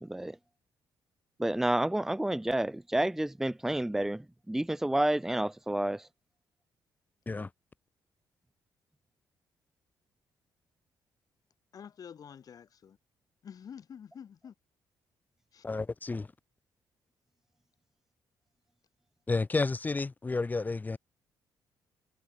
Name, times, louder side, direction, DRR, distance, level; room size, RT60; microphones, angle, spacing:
voice 1, 0.0-0.4 1.4-6.0, right 1 dB, 5° right, 0.7 m, -30 dB
voice 2, 11.7-13.0 13.4-14.5 15.5-15.6, left 8 dB, 55° left, 4.2 m, -48 dB
voice 3, 15.6-16.3 19.3-21.0, left 3 dB, 20° left, 3.5 m, -31 dB
cardioid pair, 110°, 8 cm